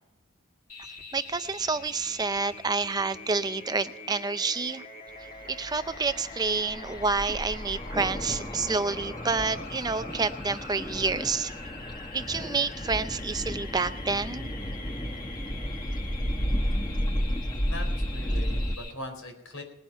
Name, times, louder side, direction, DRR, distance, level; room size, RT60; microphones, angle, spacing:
sound 1, 0.7-18.9, left 3 dB, 40° left, 2.1 m, -44 dB
voice 1, 1.1-4.8 5.2-11.5 12.1-14.5, right 4 dB, 20° right, 12 dB, 0.4 m, -29 dB
sound 2, 5.4-18.8, equal, 20° left, 0.9 m, -33 dB
voice 2, 17.7-19.6, left 1 dB, 85° left, 4 dB, 4.5 m, -40 dB
20.0 x 9.1 x 5.5 m, 0.85 s
head